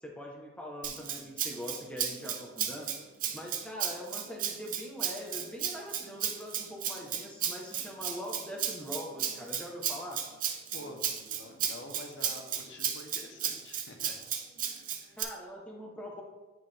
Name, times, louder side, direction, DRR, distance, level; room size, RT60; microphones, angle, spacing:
voice 1, 0.0-2.9 3.3-10.2 15.2-16.2, equal, 5° left, -2 dB, 0.9 m, -42 dB
Rattle (instrument), 0.8-15.2, right 9 dB, 45° right, 0.6 m, -34 dB
voice 2, 10.7-14.2 14.6-15.1, left 2 dB, 75° left, 3 dB, 0.9 m, -48 dB
9.5 x 3.8 x 3.3 m, 1.2 s
head